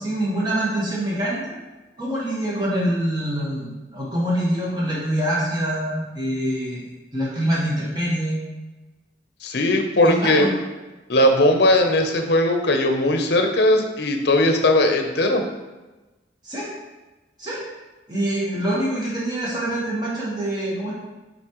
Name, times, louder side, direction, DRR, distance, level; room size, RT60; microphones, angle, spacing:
voice 1, 0.0-1.6 2.0-6.9 7.1-8.4 10.0-10.5 16.4-16.7 17.4-17.6 18.1-20.9, right 1 dB, 25° right, -6 dB, 1.4 m, -25 dB
voice 2, 9.4-10.5 11.1-15.4, left 1 dB, 60° left, 5 dB, 0.7 m, -18 dB
8.2 x 4.2 x 3.0 m, 1.2 s
head